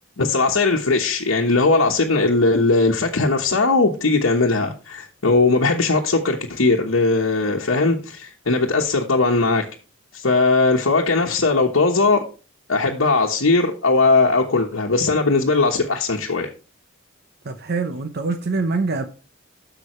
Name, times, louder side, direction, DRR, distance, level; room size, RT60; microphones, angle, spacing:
voice 1, 0.2-9.7 10.1-12.2 12.7-16.5, left 3 dB, 75° left, 1.2 m, -19 dB
voice 2, 17.5-19.1, right 3 dB, 50° right, 0.8 m, -24 dB
11.0 x 7.0 x 3.1 m
head